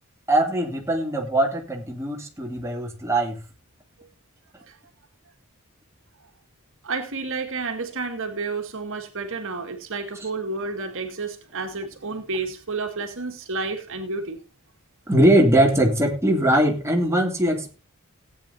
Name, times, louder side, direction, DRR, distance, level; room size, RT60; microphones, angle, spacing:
voice 1, 0.3-3.4 15.1-17.7, right 1 dB, 15° right, 0 dB, 2.6 m, -21 dB
voice 2, 6.8-14.4, right 3 dB, 65° right, 5 dB, 2.0 m, -30 dB
17.5 x 9.1 x 2.7 m, 0.32 s
head